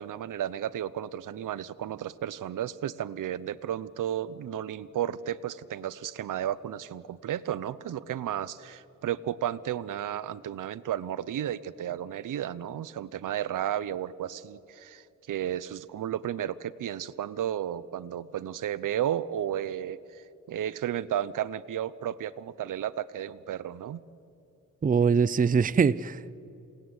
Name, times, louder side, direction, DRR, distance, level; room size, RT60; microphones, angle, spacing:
voice 1, 0.0-24.0, right 10 dB, 80° right, 0.7 m, -33 dB
voice 2, 24.8-26.4, right 6 dB, 25° right, 0.5 m, -23 dB
27.5 x 17.5 x 9.5 m
cardioid pair, 90°, 31 cm